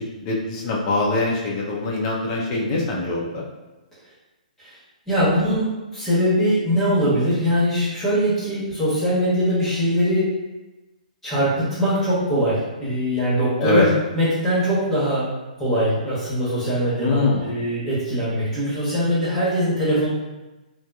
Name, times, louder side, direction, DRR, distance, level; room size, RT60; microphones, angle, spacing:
voice 1, 0.2-3.4 13.6-13.9 17.0-17.5, left 2 dB, 35° left, -3 dB, 0.5 m, -22 dB
voice 2, 5.1-10.3 11.2-15.2 15.6-20.1, equal, 10° left, -11 dB, 1.1 m, -22 dB
2.8 x 2.1 x 2.3 m, 1.1 s
hypercardioid pair, 135°, 5 cm